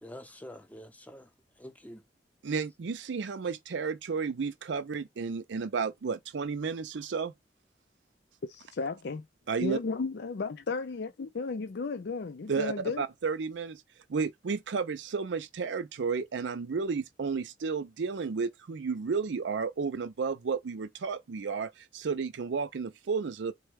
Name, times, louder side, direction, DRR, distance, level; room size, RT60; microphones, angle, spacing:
voice 1, 0.0-2.0, equal, 10° left, 0.7 m, -47 dB
voice 2, 2.4-7.3 9.5-9.8 12.5-13.8 14.1-23.5, right 5 dB, 80° right, 0.5 m, -32 dB
voice 3, 8.4-9.2 9.6-13.0, left 4 dB, 65° left, 0.5 m, -34 dB
4.2 x 2.2 x 4.6 m
head